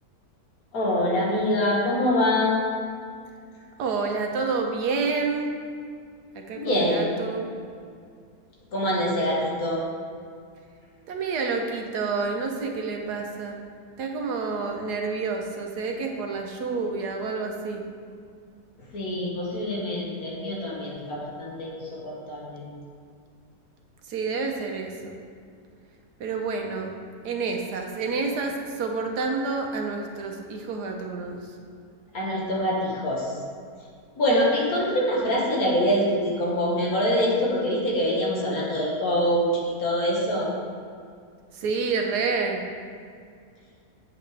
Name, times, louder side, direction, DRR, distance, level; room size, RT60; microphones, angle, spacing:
voice 1, 0.7-2.6 6.6-7.2 8.7-9.8 18.9-22.6 32.1-33.4 34.2-40.5, equal, 60° left, -4 dB, 2.1 m, -25 dB
voice 2, 3.8-5.5 6.3-7.5 11.1-13.6 14.0-17.8 24.1-25.2 26.2-27.0 27.2-31.4 41.5-42.6, right 4 dB, 75° right, 2 dB, 1.4 m, -29 dB
8.2 x 7.8 x 3.4 m, 2.2 s
omnidirectional pair, 1.7 m